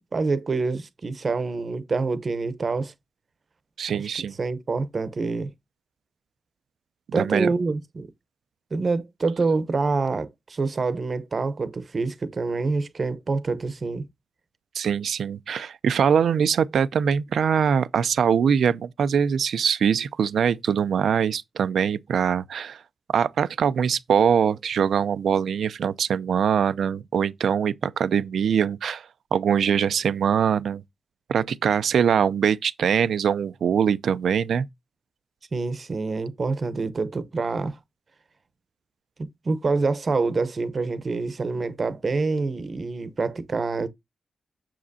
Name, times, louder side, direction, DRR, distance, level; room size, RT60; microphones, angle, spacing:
voice 1, 0.1-2.9 3.9-4.1 4.4-5.5 7.1-8.1 8.7-14.1 35.5-37.8 39.2-43.9, right 3 dB, 35° right, 0.8 m, -26 dB
voice 2, 3.8-4.4 7.2-7.5 14.7-22.8 23.1-29.1 29.3-30.8 31.3-34.6, right 7 dB, 85° right, 0.5 m, -23 dB
7.5 x 7.1 x 2.7 m
wide cardioid pair, 180°, 0 cm